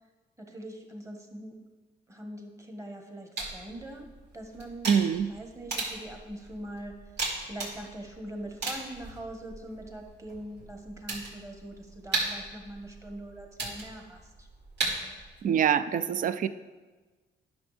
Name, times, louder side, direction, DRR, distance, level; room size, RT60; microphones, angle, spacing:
voice 1, 0.4-1.6 2.1-4.1 4.3-7.1 7.4-14.5, right 1 dB, 15° right, 3 dB, 1.4 m, -42 dB
sound 1, 3.4-15.4, right 3 dB, 60° right, 2.8 m, -37 dB
voice 2, 4.9-5.3 15.4-16.5, right 8 dB, 45° right, 14 dB, 0.4 m, -25 dB
11.0 x 6.2 x 3.3 m, 1.3 s
cardioid pair, 90°, 20 cm